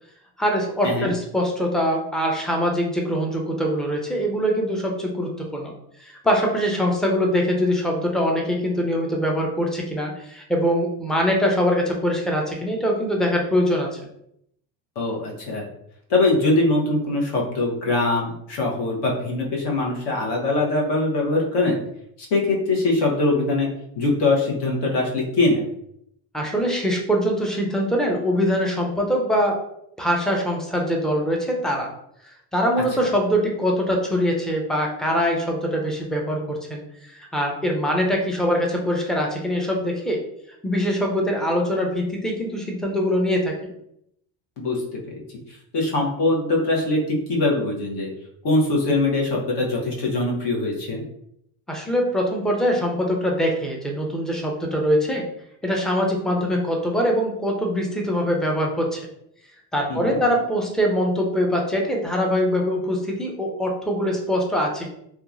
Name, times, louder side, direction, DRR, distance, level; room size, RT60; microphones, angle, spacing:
voice 1, 0.4-5.7 6.0-14.0 26.3-29.6 30.0-31.9 32.5-40.2 40.6-43.5 51.7-55.3 55.6-59.1 59.7-64.9, equal, ahead, 0 dB, 0.3 m, -23 dB
voice 2, 15.0-15.6 16.1-21.8 22.3-23.7 24.0-25.6 44.6-45.2 45.7-48.1 48.4-51.0 59.9-60.2, left 2 dB, 65° left, -2 dB, 1.0 m, -22 dB
2.8 x 2.3 x 2.5 m, 0.74 s
cardioid pair, 110°, 44 cm